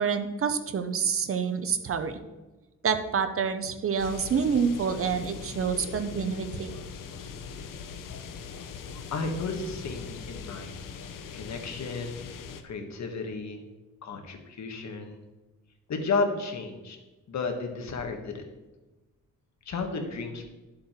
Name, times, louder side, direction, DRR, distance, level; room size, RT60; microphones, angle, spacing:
voice 1, 0.0-2.2 2.8-6.7, right 6 dB, 45° right, 9 dB, 0.9 m, -27 dB
sound 1, 4.0-12.6, left 6 dB, 80° left, 0.9 m, -41 dB
voice 2, 9.1-10.7 11.3-12.2 12.6-13.6 14.0-15.2 15.9-17.0 17.3-18.5 19.6-20.4, left 4 dB, 60° left, 4 dB, 1.6 m, -32 dB
11.0 x 7.7 x 4.4 m, 1.1 s
wide cardioid pair, 150°, 32 cm